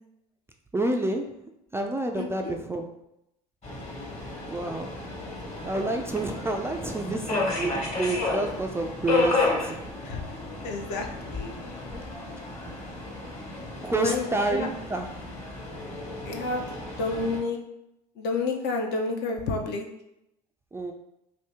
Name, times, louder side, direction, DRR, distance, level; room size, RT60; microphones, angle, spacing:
voice 1, 0.7-1.3 1.7-2.9 4.5-4.9 5.6-9.8 10.9-11.3 11.9-12.1 13.5-15.1 20.7-20.9, right 2 dB, 10° right, 3 dB, 0.3 m, -29 dB
voice 2, 2.2-2.5 10.0-10.2 10.6-11.6 14.0-14.7 16.2-17.6 18.2-19.9, left 3 dB, 55° left, 2 dB, 0.7 m, -30 dB
Subway metro underground, 3.6-17.4, left 3 dB, 35° left, 1.3 m, -32 dB
2.7 x 2.6 x 3.5 m, 0.83 s
hypercardioid pair, 70°, 20 cm